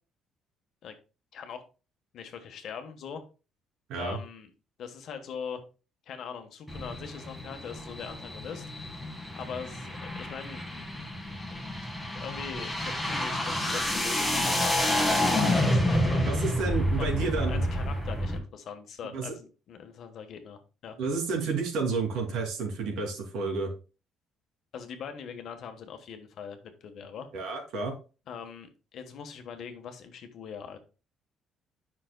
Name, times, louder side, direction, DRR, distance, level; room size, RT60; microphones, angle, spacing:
voice 1, 2.1-3.2 4.0-4.5 4.8-5.6 6.1-8.6 9.3-10.6 12.2-16.3 17.0-17.1 17.4-21.0 24.7-27.3 28.3-30.8, left 7 dB, 55° left, 6 dB, 1.2 m, -41 dB
sound 1, 6.7-18.4, left 1 dB, 5° left, 1.6 m, -29 dB
voice 2, 16.3-17.6 19.1-19.3 21.0-23.7 27.3-27.9, right 4 dB, 80° right, 1 dB, 2.8 m, -30 dB
10.5 x 5.9 x 2.2 m, 0.33 s
cardioid pair, 155°, 0 cm